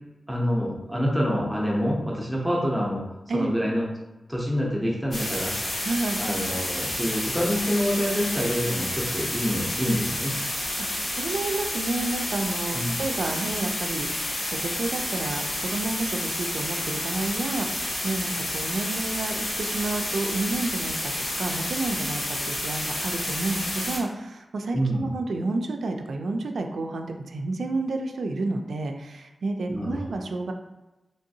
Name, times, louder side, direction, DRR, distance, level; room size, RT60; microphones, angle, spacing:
voice 1, 0.3-3.0 3.3-3.9 4.3-5.5 6.2-10.3 12.7-13.0 24.7-25.1 29.7-30.0, equal, 5° right, -3 dB, 0.5 m, -26 dB
sound 1, 5.1-24.0, left 1 dB, 65° left, 0.9 m, -30 dB
voice 2, 5.8-6.2 10.8-30.5, right 2 dB, 85° right, 5 dB, 0.3 m, -30 dB
3.2 x 2.6 x 2.6 m, 0.99 s
wide cardioid pair, 125°, 0 cm